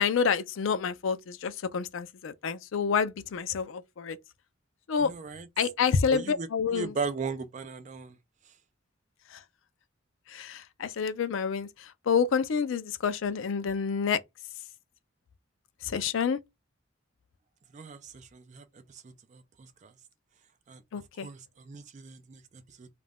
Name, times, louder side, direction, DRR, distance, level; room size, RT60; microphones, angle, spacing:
voice 1, 0.0-4.2 4.9-5.1 5.6-6.9 9.3-9.4 10.3-14.2 15.8-16.4 20.9-21.3, left 6 dB, 70° left, 0.4 m, -28 dB
voice 2, 5.0-5.7 6.1-8.2 17.7-19.9 20.7-20.8 21.2-22.9, right 4 dB, 35° right, 0.3 m, -38 dB
2.4 x 2.2 x 3.3 m
head